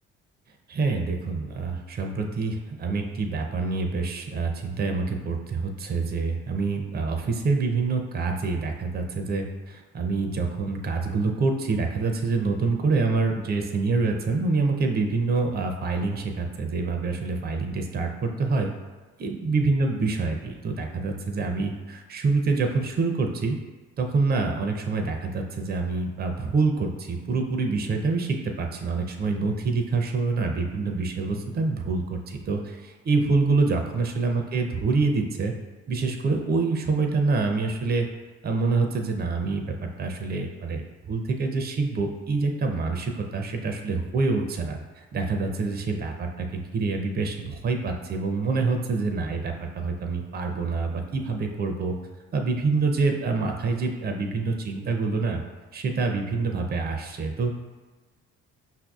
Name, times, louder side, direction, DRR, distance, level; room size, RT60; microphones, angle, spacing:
voice 1, 0.7-18.7 19.2-23.6 24.0-35.5 35.9-38.1 38.4-39.6 40.0-40.8 41.1-52.0 52.3-55.4 55.7-57.6, right 3 dB, 30° right, 3 dB, 0.5 m, -26 dB
5.5 x 2.6 x 2.3 m, 1.3 s
hypercardioid pair, 55°, 31 cm